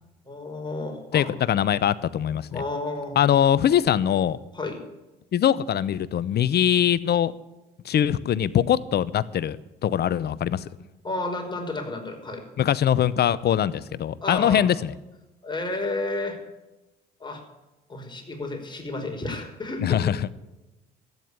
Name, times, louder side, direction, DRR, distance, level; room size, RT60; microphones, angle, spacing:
voice 1, 0.3-1.3 2.5-3.2 4.5-4.8 11.0-12.4 14.2-14.6 15.4-16.4 17.2-17.4 17.9-20.3, left 2 dB, 20° left, 2 dB, 5.3 m, -31 dB
voice 2, 1.1-2.6 3.2-4.4 5.3-7.3 7.8-9.6 9.8-10.6 12.6-14.9 19.8-20.3, left 10 dB, 50° left, 19 dB, 0.8 m, -22 dB
13.5 x 9.8 x 9.0 m, 1.0 s
hypercardioid pair, 60°, 21 cm